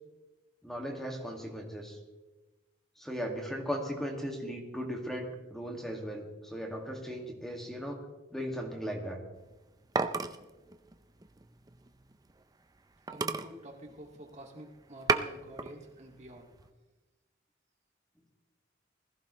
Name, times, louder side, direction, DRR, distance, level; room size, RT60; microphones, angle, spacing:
voice 1, 0.6-2.0 3.0-8.0 8.3-9.2, equal, ahead, 1 dB, 2.1 m, -37 dB
sound 1, 9.4-12.4 12.8-12.9 13.1-14.5 14.8-15.7 16.2-16.7, right 4 dB, 20° right, 0.5 m, -34 dB
voice 2, 13.1-16.5, right 1 dB, 35° right, 0 dB, 2.3 m, -48 dB
20.5 x 15.0 x 3.2 m, 1.1 s
head